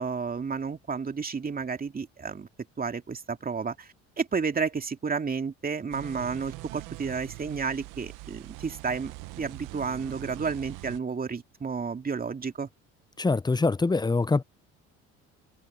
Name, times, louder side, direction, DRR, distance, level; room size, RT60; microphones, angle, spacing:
voice 1, 0.0-2.5 2.8-9.1 9.4-12.7, right 5 dB, 30° right, 2.5 m, -31 dB
sound 1, 5.9-11.0, right 21 dB, 70° right, 1.0 m, -42 dB
voice 2, 13.2-14.4, left 3 dB, 15° left, 0.7 m, -24 dB
supercardioid pair, 75°, 32 cm